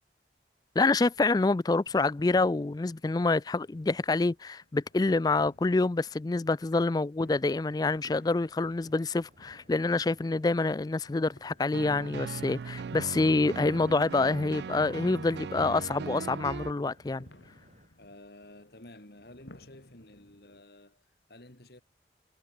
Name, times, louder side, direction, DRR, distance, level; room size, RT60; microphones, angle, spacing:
voice 1, 0.8-17.3, left 3 dB, 20° left, 0.3 m, -27 dB
sound 1, 0.9-20.6, left 1 dB, 85° left, 3.2 m, -59 dB
Waves surf, 7.2-17.9, right 1 dB, 40° right, 6.0 m, -60 dB
sound 2, 11.7-16.7, right 5 dB, 75° right, 0.4 m, -39 dB
voice 2, 18.0-21.8, left 1 dB, 60° left, 3.2 m, -52 dB
head